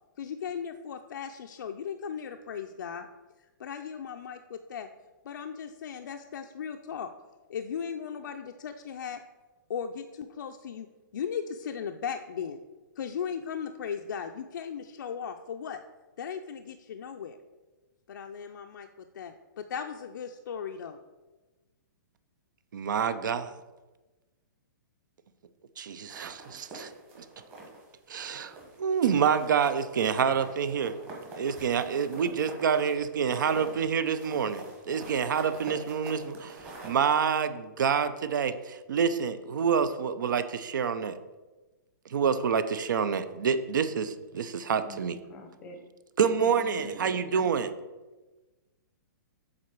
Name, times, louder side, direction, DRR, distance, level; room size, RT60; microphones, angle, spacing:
voice 1, 0.2-3.1 3.4-4.9 5.2-7.1 7.5-9.2 9.7-10.9 11.1-12.6 13.0-15.8 16.2-17.4 18.1-21.0, left 7 dB, 70° left, 6 dB, 0.4 m, -37 dB
voice 2, 22.7-23.5 25.8-26.9 27.2-27.3 28.1-31.0 31.4-41.2 42.1-45.2 46.2-47.7, right 7 dB, 70° right, 12 dB, 0.5 m, -27 dB
sound 1, 26.1-27.8 28.2-28.8 29.1-37.0, right 2 dB, 15° right, 1.1 m, -45 dB
voice 3, 44.7-45.8 46.4-47.6, left 1 dB, 10° left, 3 dB, 0.6 m, -45 dB
7.5 x 4.2 x 4.6 m, 1.2 s
hypercardioid pair, 175°, 11 cm